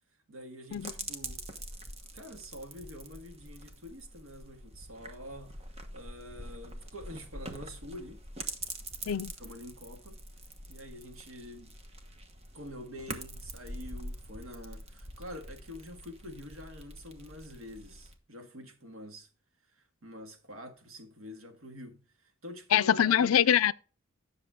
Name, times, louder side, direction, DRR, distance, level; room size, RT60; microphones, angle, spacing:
voice 1, 0.3-1.4 2.1-5.6 5.9-8.2 9.0-10.2 10.7-11.8 12.5-19.3 19.7-23.4, equal, 90° right, 1.8 m, -46 dB
sound 1, 0.7-18.1, right 2 dB, 30° right, 1.1 m, -45 dB
voice 2, 22.7-23.7, left 9 dB, 85° left, 0.4 m, -24 dB
10.0 x 6.6 x 3.7 m
head